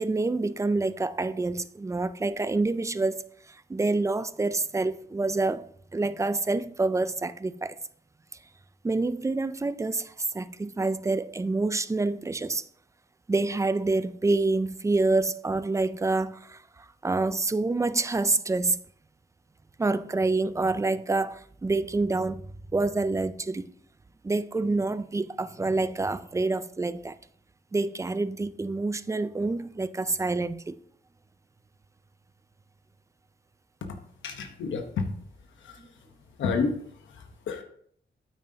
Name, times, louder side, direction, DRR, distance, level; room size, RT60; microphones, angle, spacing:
voice 1, 0.0-7.8 8.8-12.6 13.3-18.8 19.8-22.4 22.7-23.7 24.2-27.2 27.7-30.8 35.8-35.9, right 3 dB, 15° right, 0.4 m, -27 dB
voice 2, 34.2-35.1 35.6-36.1 36.4-37.6, left 5 dB, 90° left, 1.0 m, -31 dB
8.9 x 8.8 x 2.8 m
cardioid pair, 110°, 19 cm